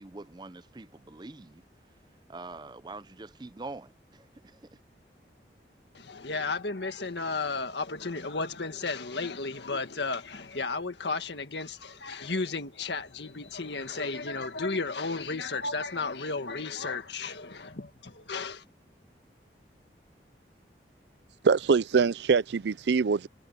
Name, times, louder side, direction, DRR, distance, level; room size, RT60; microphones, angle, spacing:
voice 1, 0.0-1.6 2.3-3.9, right 3 dB, 25° right, 0.5 m, -43 dB
voice 2, 5.9-18.6, left 3 dB, 80° left, 1.8 m, -33 dB
voice 3, 21.4-23.3, right 5 dB, 75° right, 0.5 m, -23 dB
head